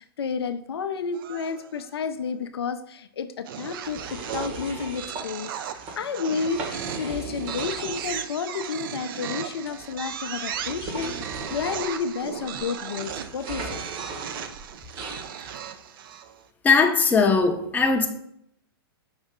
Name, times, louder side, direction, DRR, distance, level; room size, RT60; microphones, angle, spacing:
voice 1, 0.0-13.8, left 6 dB, 80° left, 9 dB, 0.4 m, -31 dB
sound 1, 1.1-1.9 3.5-16.4, right 9 dB, 60° right, 0.4 m, -36 dB
sound 2, 3.8-5.2 5.7-5.9 6.4-8.3 8.6-8.7 9.6-15.2, right 2 dB, 40° right, 1.3 m, -38 dB
voice 2, 16.6-18.1, left 4 dB, 10° left, 4 dB, 0.6 m, -19 dB
5.6 x 2.6 x 3.6 m, 0.72 s
hypercardioid pair, 115°, 13 cm